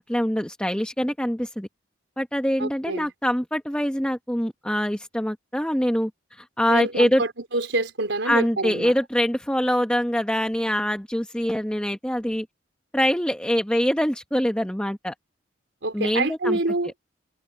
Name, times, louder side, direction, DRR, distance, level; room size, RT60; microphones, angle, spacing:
voice 1, 0.1-1.7 2.2-7.2 8.2-12.5 12.9-15.1 15.9-16.6, equal, 5° left, 1.2 m, -24 dB
voice 2, 2.6-3.1 6.7-8.9 15.8-16.9, right 2 dB, 75° right, 4.1 m, -27 dB
head